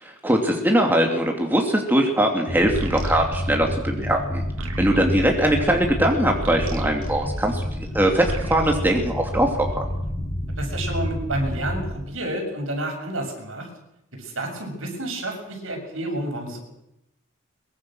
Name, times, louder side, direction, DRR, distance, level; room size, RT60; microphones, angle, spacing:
voice 1, 0.0-4.4 4.8-7.6 7.9-9.8, right 1 dB, 10° right, 1 dB, 2.9 m, -21 dB
sound 1, 2.5-11.9, left 1 dB, 50° left, 6.5 m, -29 dB
sound 2, 2.7-7.9 8.2-9.9, right 1 dB, 85° right, 2.6 m, -34 dB
voice 2, 10.6-13.7 14.1-16.6, right 1 dB, 70° right, 2 dB, 7.1 m, -30 dB
23.5 x 22.5 x 6.4 m, 0.84 s
head